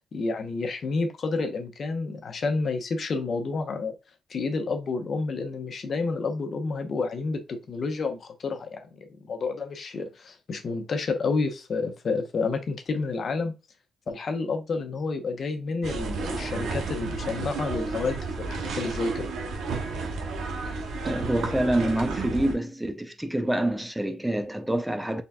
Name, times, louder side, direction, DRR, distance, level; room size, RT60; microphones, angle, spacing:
voice 1, 0.1-3.9 4.3-13.5 14.1-19.3, left 4 dB, 55° left, 0.8 m, -30 dB
sound 1, 15.8-22.5, right 3 dB, 80° right, 0.8 m, -32 dB
voice 2, 21.0-25.2, right 1 dB, 5° right, 0.5 m, -27 dB
3.9 x 3.5 x 2.3 m
supercardioid pair, 65°, 0 cm